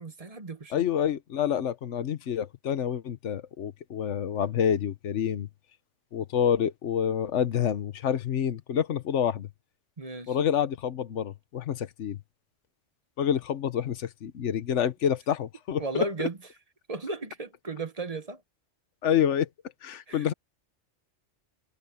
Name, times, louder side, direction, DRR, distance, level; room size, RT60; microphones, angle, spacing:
voice 1, 0.0-0.9 10.0-10.4 15.8-16.4 16.9-18.4 20.1-20.3, right 3 dB, 35° right, 1.1 m, -35 dB
voice 2, 0.7-5.5 6.1-9.5 10.3-12.2 13.2-16.3 19.0-19.5 19.8-20.3, left 9 dB, 80° left, 1.3 m, -28 dB
omnidirectional pair, 1.2 m